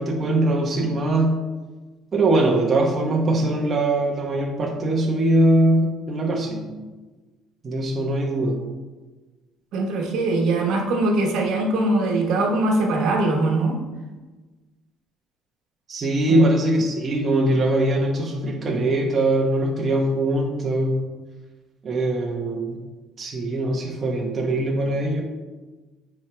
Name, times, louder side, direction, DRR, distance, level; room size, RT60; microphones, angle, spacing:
voice 1, 0.0-1.4 2.1-6.8 7.6-8.6 15.9-21.0 21.8-22.8 23.2-25.2, right 1 dB, 30° right, -1 dB, 1.0 m, -21 dB
voice 2, 9.7-13.8 16.3-16.5, right 2 dB, 70° right, 1 dB, 1.2 m, -22 dB
9.5 x 4.5 x 3.3 m, 1.2 s
cardioid pair, 135°, 0 cm